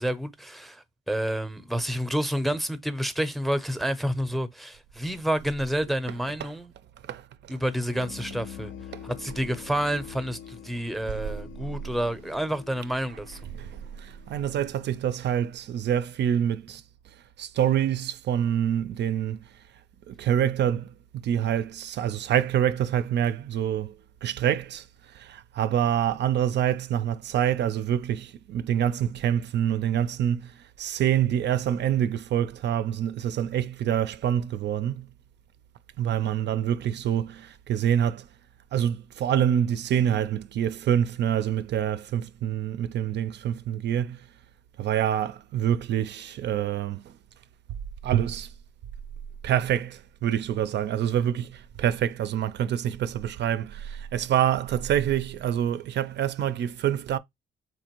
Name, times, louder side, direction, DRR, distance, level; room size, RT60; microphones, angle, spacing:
voice 1, 0.0-6.7 7.5-8.7 9.0-13.4, equal, ahead, 0.6 m, -29 dB
sound 1, 7.9-15.3, left 9 dB, 70° left, 0.5 m, -45 dB
voice 2, 14.0-16.8 17.4-19.4 20.1-23.9 24.2-24.9 25.1-30.5 30.8-35.1 36.0-38.2 38.7-44.2 44.8-47.1 48.0-48.5 49.4-57.2, right 10 dB, 60° right, 0.4 m, -26 dB
4.4 x 2.5 x 2.9 m
cardioid pair, 90°, 20 cm